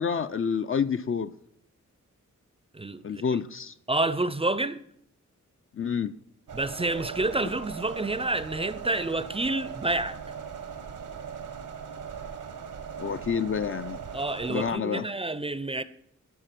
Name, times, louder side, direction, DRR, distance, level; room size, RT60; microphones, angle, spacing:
voice 1, 0.0-1.3 3.0-3.7 5.7-6.1 13.0-14.0 14.5-15.1, left 6 dB, 45° left, 0.4 m, -28 dB
voice 2, 2.7-3.4 3.9-4.8 6.5-10.2 14.1-15.8, right 2 dB, 20° right, 0.5 m, -29 dB
sound 1, 6.5-14.7, right 7 dB, 80° right, 0.9 m, -39 dB
12.0 x 4.6 x 5.8 m
cardioid pair, 65°, 31 cm